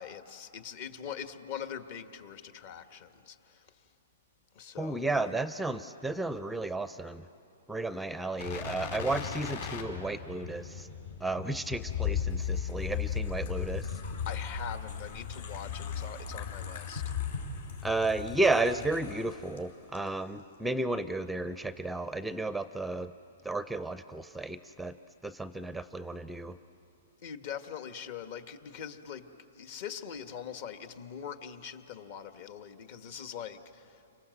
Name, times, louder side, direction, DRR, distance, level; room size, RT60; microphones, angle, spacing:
voice 1, 0.0-3.7 4.5-5.4 14.2-17.1 27.2-29.3 29.5-34.0, left 8 dB, 50° left, 8 dB, 1.6 m, -42 dB
voice 2, 4.8-7.2 7.7-10.9 11.2-13.9 17.8-23.1 23.4-24.9 25.2-26.6, right 2 dB, 5° right, 12 dB, 0.5 m, -32 dB
sound 1, 8.4-19.6 19.9-20.1, left 7 dB, 70° left, 4.3 m, -36 dB
29.5 x 25.5 x 7.9 m, 2.9 s
hypercardioid pair, 145°, 0 cm